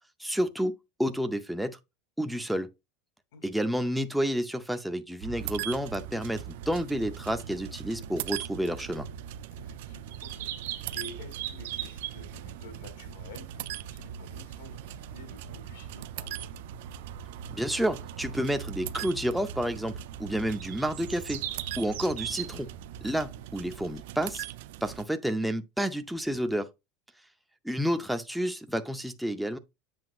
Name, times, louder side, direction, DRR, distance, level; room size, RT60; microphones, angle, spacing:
voice 1, 0.2-0.7 1.0-1.8 2.2-2.7 3.4-9.1 17.5-19.9 20.2-21.5 21.8-22.7 23.0-24.5 24.8-26.7 27.6-29.6, equal, ahead, 0.5 m, -30 dB
sound 1, 5.2-23.6, right 8 dB, 85° right, 1.5 m, -42 dB
sound 2, 5.4-25.0, right 15 dB, 70° right, 0.3 m, -42 dB
voice 2, 9.6-16.5 22.4-22.7, left 3 dB, 80° left, 2.6 m, -50 dB
7.8 x 6.0 x 2.4 m
supercardioid pair, 160°, 0 cm